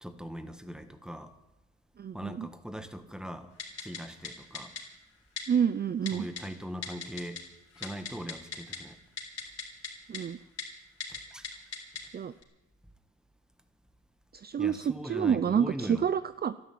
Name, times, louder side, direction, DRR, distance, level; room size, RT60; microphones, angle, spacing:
voice 1, 0.0-1.3 2.1-3.5 3.8-4.7 6.1-7.4 7.8-9.0 11.1-11.5 14.6-16.0, equal, ahead, 1.5 m, -40 dB
voice 2, 2.0-2.5 5.5-6.3 10.1-10.4 12.1-12.3 14.3-16.5, right 8 dB, 30° right, 0.5 m, -28 dB
Typing, 3.6-4.0 4.2-4.3 4.5-4.8 5.4-5.5 6.1-6.4 6.8-7.4 7.7-8.8 9.2-9.9 10.1-10.2 10.6-10.7 11.0-11.2 11.4-12.0 12.4-12.5, left 6 dB, 55° left, 4.3 m, -37 dB
12.5 x 11.5 x 9.4 m
cardioid pair, 90°, 30 cm